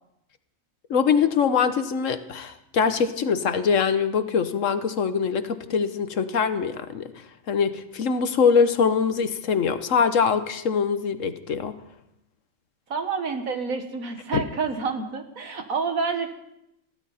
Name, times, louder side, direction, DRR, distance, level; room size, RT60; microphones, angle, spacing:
voice 1, 0.9-7.1 7.5-11.7 14.3-14.4, left 6 dB, 65° left, 10 dB, 1.3 m, -23 dB
voice 2, 12.9-16.3, right 5 dB, 80° right, 6 dB, 2.0 m, -28 dB
22.5 x 15.5 x 4.2 m, 0.82 s
omnidirectional pair, 1.4 m